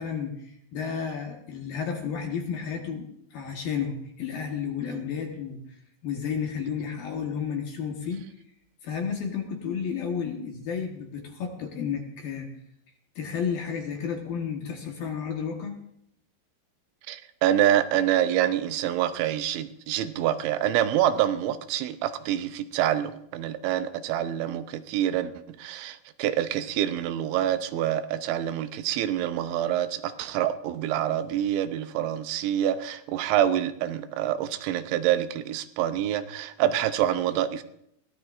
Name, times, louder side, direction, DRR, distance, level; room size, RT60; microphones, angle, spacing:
voice 1, 0.0-5.6 6.0-8.2 8.8-12.5 13.2-15.8, left 7 dB, 65° left, 2 dB, 2.7 m, -32 dB
voice 2, 17.1-25.3 25.6-37.6, right 11 dB, 80° right, 11 dB, 3.0 m, -26 dB
22.5 x 17.0 x 2.5 m, 0.73 s
omnidirectional pair, 5.4 m